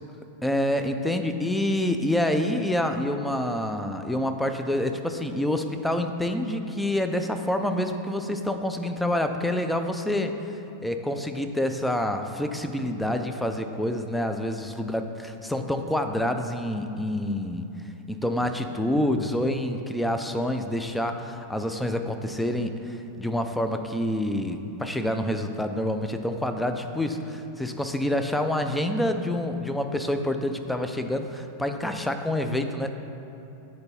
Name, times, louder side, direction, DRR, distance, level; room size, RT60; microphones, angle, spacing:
voice 1, 0.4-10.4 10.8-17.7 18.1-33.0, left 1 dB, 5° left, 6 dB, 0.5 m, -27 dB
9.5 x 4.4 x 4.3 m, 2.8 s
figure-of-eight pair, 90°, 0 cm